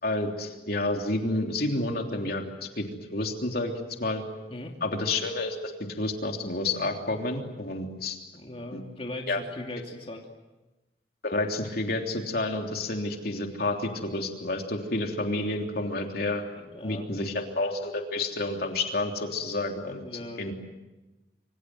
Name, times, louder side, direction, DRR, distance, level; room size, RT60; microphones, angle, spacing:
voice 1, 0.0-3.7 4.0-4.2 4.8-5.7 6.0-8.2 8.7-8.8 9.3-9.4 11.2-16.4 16.8-20.0 20.4-20.5, left 2 dB, 60° left, 3 dB, 3.3 m, -30 dB
voice 2, 8.3-10.2 16.6-17.1 19.9-20.5, left 1 dB, 35° left, 1 dB, 2.8 m, -39 dB
27.0 x 25.5 x 7.9 m, 1.1 s
head